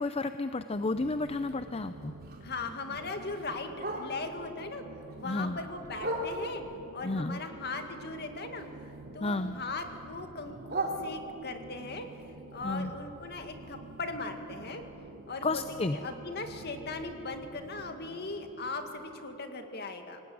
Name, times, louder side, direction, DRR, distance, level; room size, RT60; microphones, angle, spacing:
voice 1, 0.0-2.1 5.2-5.6 7.0-7.4 9.2-9.6 12.6-12.9 15.4-16.0, left 2 dB, 25° left, 10 dB, 0.5 m, -32 dB
sound 1, 0.7-19.4, right 2 dB, 60° right, 1.3 m, -49 dB
Bark, 1.2-4.4 4.8-6.7 7.2-9.0 9.3-11.6 12.1-16.0 16.3-16.4 16.7-17.1 17.5-17.6 18.0-18.1 18.6-18.7, right 1 dB, 45° right, 3.2 m, -41 dB
voice 2, 2.4-4.8 5.2-6.6 6.9-12.1 12.5-14.8 15.3-15.6 15.9-20.2, left 3 dB, 50° left, 6 dB, 2.2 m, -39 dB
24.0 x 19.0 x 9.6 m, 2.9 s
head